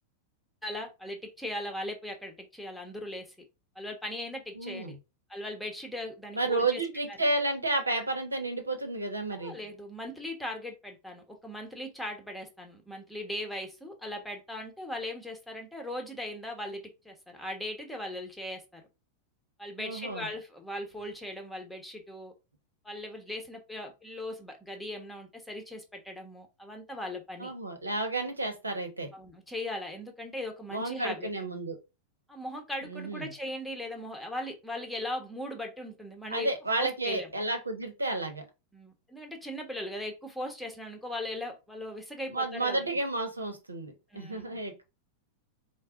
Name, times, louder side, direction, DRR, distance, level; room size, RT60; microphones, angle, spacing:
voice 1, 0.6-3.3 3.7-5.0 5.3-6.8 9.3-18.8 19.6-22.3 22.8-27.5 29.1-31.3 32.3-36.5 36.8-37.3 38.7-42.9 44.1-44.6, left 1 dB, ahead, 1.1 m, -39 dB
voice 2, 4.6-5.0 6.3-9.5 19.8-20.3 27.4-29.1 30.7-31.8 32.9-33.3 36.3-38.4 42.3-44.8, right 2 dB, 80° right, 1.0 m, -31 dB
4.6 x 2.2 x 3.6 m
figure-of-eight pair, 90°, 0 cm